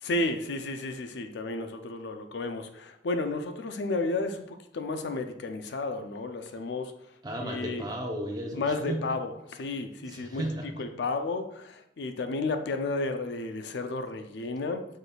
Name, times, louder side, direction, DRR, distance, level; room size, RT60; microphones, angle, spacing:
voice 1, 0.0-6.9 7.4-7.8 8.5-9.3 9.6-10.4 10.8-14.8, left 2 dB, 65° left, 7 dB, 0.4 m, -32 dB
voice 2, 7.2-9.2 10.0-10.8, right 1 dB, 20° right, 2 dB, 0.6 m, -35 dB
5.0 x 3.9 x 2.3 m, 0.76 s
head